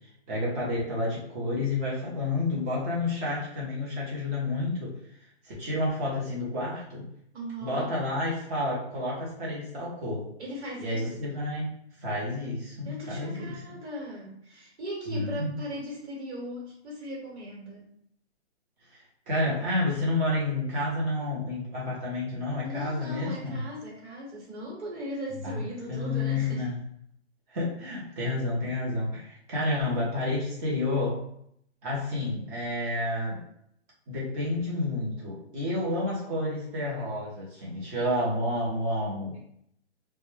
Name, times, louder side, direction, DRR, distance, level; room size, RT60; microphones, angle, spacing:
voice 1, 0.3-4.9 5.4-7.1 7.6-10.3 10.8-11.7 12.0-13.6 15.1-15.6 18.9-23.6 25.4-25.6 25.9-26.8 27.5-31.2 31.8-33.4 34.1-39.4, left 2 dB, 15° right, -5 dB, 0.5 m, -30 dB
voice 2, 7.3-7.9 10.4-11.2 12.8-17.9 22.6-26.7, equal, 75° right, -4 dB, 1.2 m, -38 dB
2.1 x 2.1 x 3.0 m, 0.70 s
hypercardioid pair, 155°, 34 cm